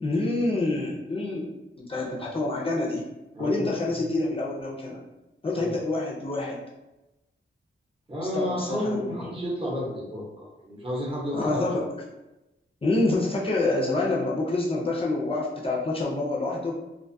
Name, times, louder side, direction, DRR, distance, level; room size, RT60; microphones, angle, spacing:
voice 1, 0.0-3.0 3.4-5.0 5.4-6.6 8.3-9.1 11.3-11.9 12.8-16.8, left 2 dB, 25° left, -4 dB, 0.4 m, -27 dB
voice 2, 3.3-3.7 4.0-4.1 5.5-5.7 8.1-11.9, equal, 25° right, -4 dB, 0.8 m, -31 dB
2.5 x 2.3 x 2.6 m, 0.99 s
wide cardioid pair, 115°, 21 cm